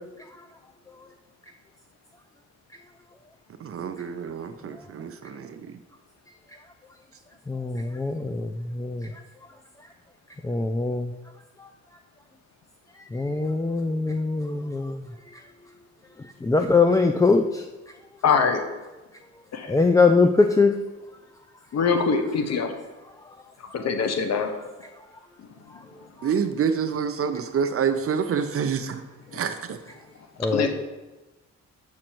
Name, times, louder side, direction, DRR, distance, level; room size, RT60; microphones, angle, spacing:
voice 1, 3.6-5.8 26.2-29.0 29.3-29.8, right 7 dB, 50° right, 8 dB, 0.7 m, -27 dB
voice 2, 7.5-9.1 10.4-11.1 13.1-15.0 16.4-17.6 19.7-20.7 30.4-30.7, left 4 dB, 10° left, 6 dB, 0.4 m, -22 dB
voice 3, 18.2-18.6 19.5-19.8 21.7-22.7 23.7-24.5 29.3-29.4 30.5-30.7, left 5 dB, 60° left, 6 dB, 1.1 m, -23 dB
7.6 x 6.2 x 4.5 m, 1.1 s
cardioid pair, 90°, 30 cm